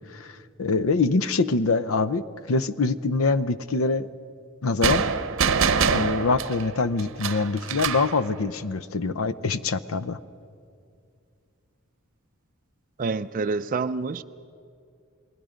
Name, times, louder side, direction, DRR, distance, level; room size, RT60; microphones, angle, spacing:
voice 1, 0.1-4.1 4.6-5.0 5.9-10.2, left 3 dB, 75° left, 0.6 m, -24 dB
sound 1, 4.8-8.2, right 5 dB, 65° right, 0.8 m, -24 dB
voice 2, 13.0-14.2, right 4 dB, 40° right, 0.4 m, -27 dB
28.5 x 20.0 x 5.1 m
head